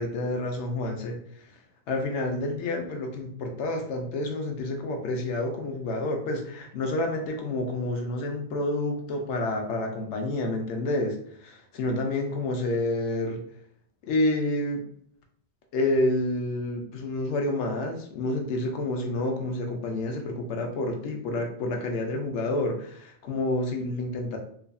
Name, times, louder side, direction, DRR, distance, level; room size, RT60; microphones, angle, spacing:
voice 1, 0.0-1.6 1.9-13.4 14.1-14.8 15.7-24.4, left 2 dB, 85° left, 2 dB, 0.9 m, -29 dB
2.6 x 2.4 x 2.2 m, 0.63 s
omnidirectional pair, 1.2 m